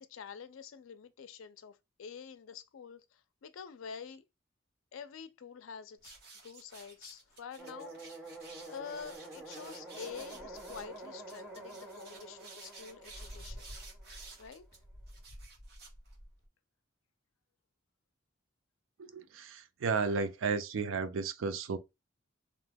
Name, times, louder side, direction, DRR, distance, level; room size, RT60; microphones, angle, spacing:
voice 1, 0.0-4.2 4.9-6.1 6.4-8.3 8.7-13.7 14.4-14.6, left 6 dB, 80° left, 0.4 m, -47 dB
sound 1, 6.0-16.4, right 2 dB, 50° right, 1.1 m, -51 dB
sound 2, 7.6-14.5, right 2 dB, 5° right, 0.7 m, -48 dB
voice 2, 19.0-21.8, right 5 dB, 80° right, 0.4 m, -33 dB
2.8 x 2.2 x 3.3 m
head